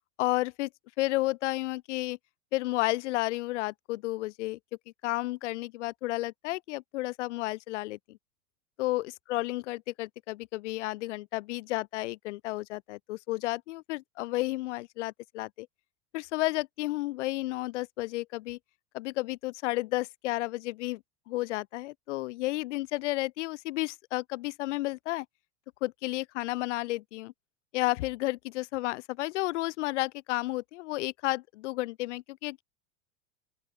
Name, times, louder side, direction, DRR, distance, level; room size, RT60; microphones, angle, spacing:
voice 1, 0.2-0.7 1.0-2.2 2.5-4.6 5.0-8.2 8.8-15.7 16.1-18.6 18.9-25.3 25.8-27.3 27.7-32.6, left 19 dB, 75° left, 2.3 m, -32 dB
open air
supercardioid pair, 150°, 35 cm